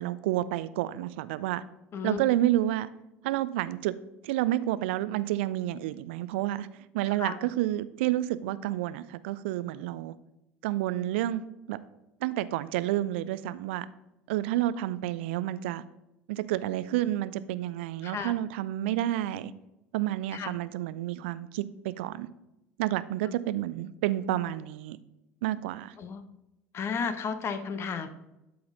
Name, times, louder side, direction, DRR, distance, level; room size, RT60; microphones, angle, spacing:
voice 1, 0.0-1.6 2.0-2.9 3.2-3.9 4.2-6.7 6.9-10.1 10.6-11.8 12.2-13.9 14.3-15.8 16.3-19.5 19.9-22.3 22.8-25.0 25.4-25.9, right 14 dB, 60° right, 16 dB, 0.4 m, -30 dB
voice 2, 26.7-28.1, left 6 dB, 40° left, 10 dB, 0.8 m, -33 dB
11.5 x 4.3 x 3.8 m, 0.90 s
figure-of-eight pair, 65°, 7 cm